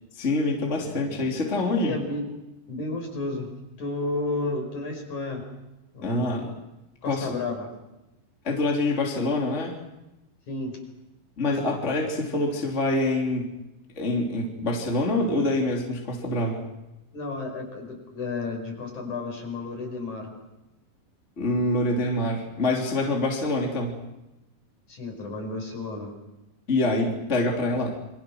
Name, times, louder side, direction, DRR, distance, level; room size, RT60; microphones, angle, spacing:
voice 1, 0.2-1.9 6.0-6.5 7.1-7.3 8.4-9.8 11.4-13.5 14.0-16.6 21.4-23.9 26.7-28.0, left 2 dB, 20° left, 0 dB, 3.2 m, -25 dB
voice 2, 0.8-1.4 1.8-2.3 2.7-3.5 3.8-5.4 5.9-6.5 7.0-7.7 10.5-10.8 17.1-20.3 24.9-26.1, left 2 dB, 55° left, 2 dB, 6.8 m, -32 dB
28.0 x 24.5 x 6.4 m, 0.95 s
omnidirectional pair, 4.0 m